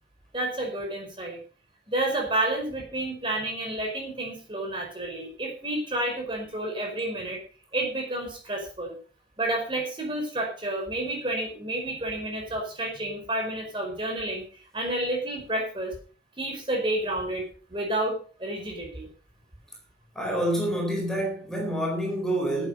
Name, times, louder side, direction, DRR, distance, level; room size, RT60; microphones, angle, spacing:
voice 1, 0.3-1.4 1.9-7.4 7.7-9.0 9.4-15.9 16.4-19.1, right 1 dB, 30° right, 5.0 m, -30 dB
voice 2, 20.1-22.7, right 1 dB, 5° left, 4.4 m, -27 dB
15.0 x 9.3 x 5.4 m
head